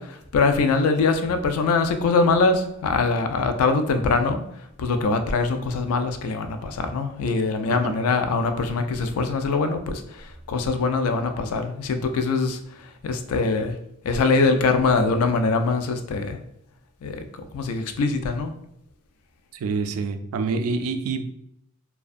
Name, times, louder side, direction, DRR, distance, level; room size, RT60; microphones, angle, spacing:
voice 1, 0.0-4.4 4.8-13.8 14.0-16.4 17.0-18.5, left 4 dB, 85° left, 7 dB, 0.3 m, -23 dB
voice 2, 19.6-21.2, right 4 dB, 90° right, 13 dB, 0.3 m, -26 dB
2.5 x 2.2 x 2.4 m, 0.78 s
head